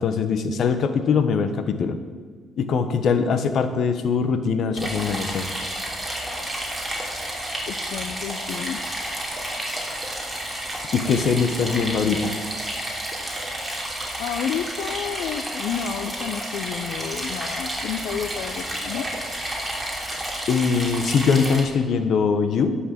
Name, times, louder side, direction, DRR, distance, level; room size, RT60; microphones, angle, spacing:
voice 1, 0.0-2.0 2.6-5.5 10.9-12.4 20.5-22.8, left 5 dB, 65° left, 9 dB, 1.1 m, -22 dB
sound 1, 4.8-21.6, right 1 dB, 5° right, 3.1 m, -31 dB
voice 2, 7.7-8.8 14.2-19.1, left 8 dB, 85° left, 8 dB, 0.5 m, -30 dB
11.0 x 6.5 x 7.6 m, 1.5 s
cardioid pair, 90°, 0 cm